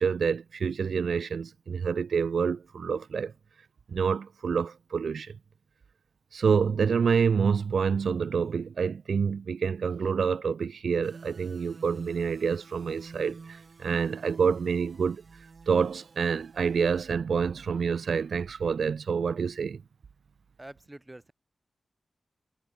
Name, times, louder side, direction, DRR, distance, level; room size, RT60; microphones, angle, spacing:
voice 1, 0.0-3.3 3.9-5.4 6.3-15.2 15.7-19.8, right 6 dB, 80° right, 0.3 m, -27 dB
sound 1, 11.0-17.1, right 4 dB, 45° right, 2.4 m, -47 dB
voice 2, 20.6-21.3, right 1 dB, 15° right, 1.4 m, -46 dB
wide cardioid pair, 165°, 0 cm